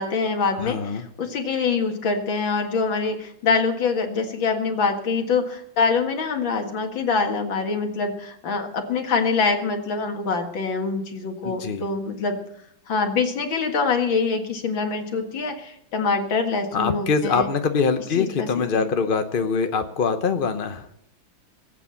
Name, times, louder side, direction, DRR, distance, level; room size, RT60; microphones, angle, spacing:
voice 1, 0.0-12.4 12.9-17.5 18.2-18.8, left 4 dB, 75° left, 4 dB, 2.6 m, -25 dB
voice 2, 0.6-1.0 11.4-11.8 16.7-20.9, left 5 dB, 55° left, 7 dB, 0.5 m, -23 dB
19.5 x 8.6 x 7.0 m, 0.72 s
omnidirectional pair, 2.1 m